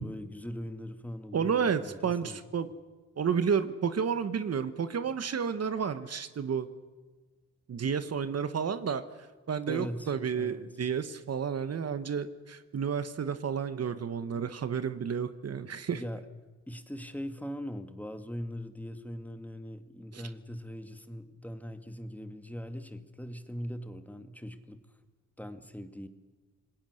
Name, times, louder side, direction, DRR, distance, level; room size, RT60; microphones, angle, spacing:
voice 1, 0.0-2.7 9.7-10.7 15.9-16.2 16.7-24.8 25.4-26.1, equal, 5° left, 8 dB, 2.0 m, -41 dB
voice 2, 1.3-2.7 3.2-6.7 7.7-9.0 9.5-16.0 20.1-20.2, right 6 dB, 55° right, 11 dB, 1.3 m, -31 dB
27.5 x 20.0 x 6.6 m, 1.3 s
cardioid pair, 80°, 30 cm